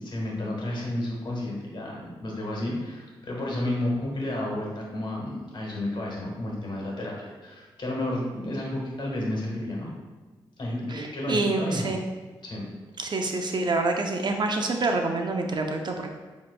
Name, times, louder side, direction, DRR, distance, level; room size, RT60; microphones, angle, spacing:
voice 1, 0.0-9.9 10.6-11.9 12.4-12.7, left 1 dB, 55° left, -2 dB, 1.4 m, -31 dB
voice 2, 10.9-12.0 13.0-16.1, right 3 dB, 50° right, 3 dB, 0.6 m, -27 dB
7.2 x 3.0 x 2.2 m, 1.4 s
cardioid pair, 55°, 10 cm